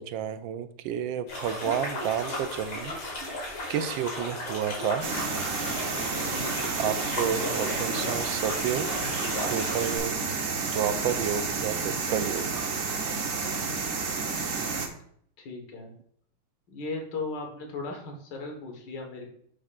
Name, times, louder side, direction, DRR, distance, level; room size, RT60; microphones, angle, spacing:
voice 1, 0.0-2.9 3.7-5.0 6.8-9.1 9.4-10.1 10.6-12.7, right 9 dB, 75° right, 11 dB, 1.2 m, -31 dB
sound 1, 1.3-10.0, left 1 dB, 80° left, 3.2 m, -35 dB
sound 2, 5.0-14.9, right 4 dB, 50° right, 1.1 m, -30 dB
voice 2, 6.1-6.6 15.4-15.9 16.7-19.3, left 3 dB, 60° left, 2 dB, 2.1 m, -37 dB
10.0 x 6.4 x 2.5 m, 0.65 s
omnidirectional pair, 2.3 m